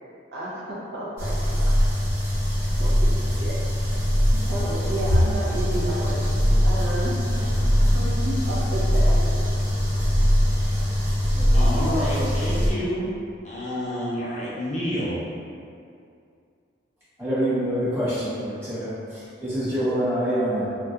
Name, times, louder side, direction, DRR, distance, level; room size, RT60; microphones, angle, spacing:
voice 1, 0.3-1.4 2.8-3.7 4.3-6.2 6.6-7.5 7.8-9.2 11.2-12.3, right 1 dB, 60° right, -5 dB, 0.4 m, -32 dB
sound 1, 1.2-12.7, equal, 45° right, 0.8 m, -22 dB
voice 2, 11.5-13.0 13.4-15.2, equal, 40° left, -8 dB, 0.4 m, -29 dB
voice 3, 17.2-20.7, equal, 15° right, -14 dB, 1.0 m, -26 dB
2.7 x 2.1 x 2.2 m, 2.4 s
head